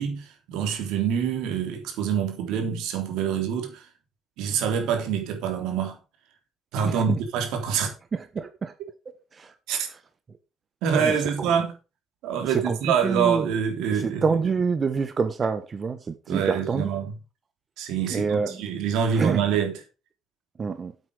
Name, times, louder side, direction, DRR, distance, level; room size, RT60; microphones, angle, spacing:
voice 1, 0.0-3.9 4.4-6.0 6.7-7.9 9.7-9.9 10.8-11.8 12.2-14.5 16.3-17.1 17.8-19.8, right 7 dB, 90° right, 3.5 m, -26 dB
voice 2, 6.8-7.2 8.1-8.7 9.4-9.5 10.9-11.2 12.5-13.4 13.9-16.9 18.1-18.5 19.1-19.4 20.6-20.9, right 5 dB, 40° right, 1.3 m, -26 dB
8.6 x 8.4 x 5.1 m
cardioid pair, 85°, 0 cm